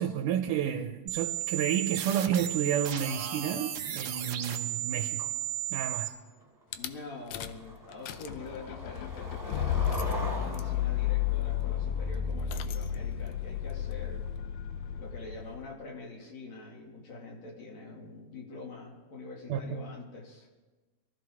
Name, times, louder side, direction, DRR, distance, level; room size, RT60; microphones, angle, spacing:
voice 1, 0.0-5.3 5.7-6.1 19.5-19.9, right 9 dB, 85° right, 2.3 m, -31 dB
sound 1, 1.1-6.1, right 12 dB, 70° right, 1.3 m, -34 dB
Skateboard, 6.4-6.5 6.9-7.2 7.5-12.2, equal, 5° right, 2.5 m, -41 dB
Rattle / Car / Engine starting, 6.7-6.9 7.3-7.6 7.9-15.7, left 9 dB, 75° left, 1.7 m, -32 dB
voice 2, 6.7-14.3 15.0-20.5, left 3 dB, 60° left, 3.5 m, -45 dB
23.0 x 14.5 x 3.6 m
omnidirectional pair, 3.6 m